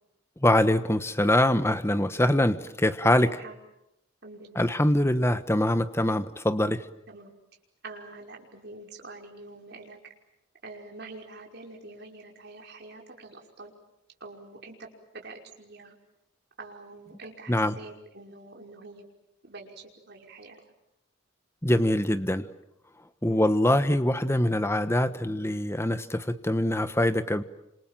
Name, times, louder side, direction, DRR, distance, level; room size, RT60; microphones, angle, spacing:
voice 1, 0.4-3.4 4.5-6.9 17.5-17.8 21.6-22.5 23.2-27.4, left 1 dB, 15° left, 11 dB, 1.2 m, -24 dB
voice 2, 4.2-4.7 7.1-7.3 7.8-10.0 10.6-13.7 14.2-16.0 16.6-19.1 19.4-20.6 23.3-23.4, right 3 dB, 55° right, 1 dB, 5.5 m, -45 dB
30.0 x 27.0 x 7.4 m, 0.85 s
head